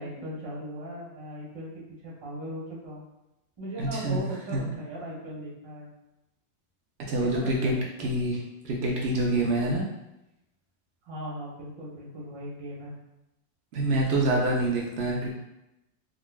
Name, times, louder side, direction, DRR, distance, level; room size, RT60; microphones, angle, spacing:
voice 1, 0.0-3.0 3.6-5.9 7.2-8.1 11.1-12.9, right 1 dB, 30° right, -5 dB, 0.5 m, -38 dB
voice 2, 3.8-4.2 4.5-4.6 7.1-8.4 8.6-9.8 13.7-15.3, right 1 dB, 80° right, -2 dB, 0.5 m, -26 dB
3.8 x 2.3 x 2.2 m, 0.92 s
omnidirectional pair, 1.6 m